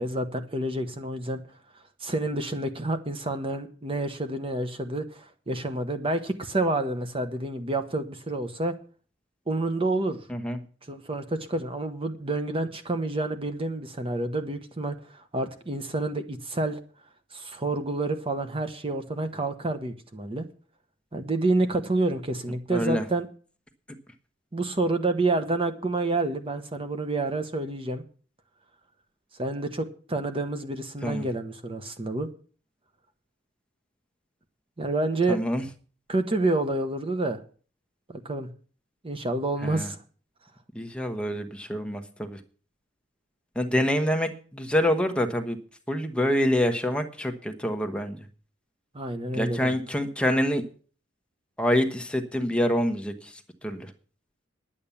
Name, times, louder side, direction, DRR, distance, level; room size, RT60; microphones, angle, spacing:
voice 1, 0.0-1.4 2.0-8.7 9.5-10.2 10.9-16.8 17.3-20.4 21.1-23.3 24.5-28.0 29.4-32.3 34.8-35.4 36.1-37.4 38.1-38.5 39.0-40.0 48.9-49.8, right 2 dB, 30° right, 8 dB, 1.0 m, -28 dB
voice 2, 22.7-23.0 31.0-31.2 35.3-35.6 39.6-39.9 40.7-42.4 43.5-45.6 45.9-48.3 49.3-50.6 51.6-53.9, equal, 5° left, 5 dB, 1.1 m, -26 dB
10.5 x 8.7 x 7.1 m, 0.41 s
head